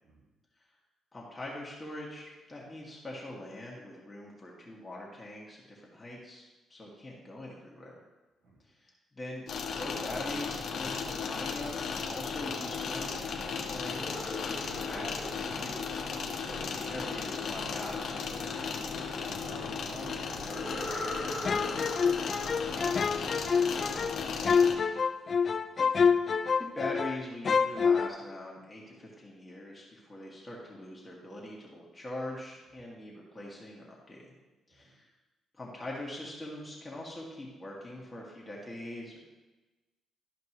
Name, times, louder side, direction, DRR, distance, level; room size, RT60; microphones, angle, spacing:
voice 1, 1.1-6.4 6.7-8.0 8.7-9.5 9.7-14.0 14.4-15.8 16.4-18.5 26.6-34.3 34.7-35.1 35.5-39.2, left 1 dB, 20° left, -4 dB, 1.9 m, -42 dB
sound 1, 9.5-24.7, left 5 dB, 60° left, 1.1 m, -36 dB
sound 2, 13.9-16.8 20.4-24.2, left 1 dB, 5° left, 2.4 m, -42 dB
voice 2, 19.0-24.8 34.7-34.9, right 2 dB, 65° right, -2 dB, 2.4 m, -52 dB
sound 3, 21.5-27.2 27.5-28.1, left 6 dB, 45° left, 0.4 m, -27 dB
12.5 x 5.1 x 3.1 m, 1.1 s
cardioid pair, 90°, 0 cm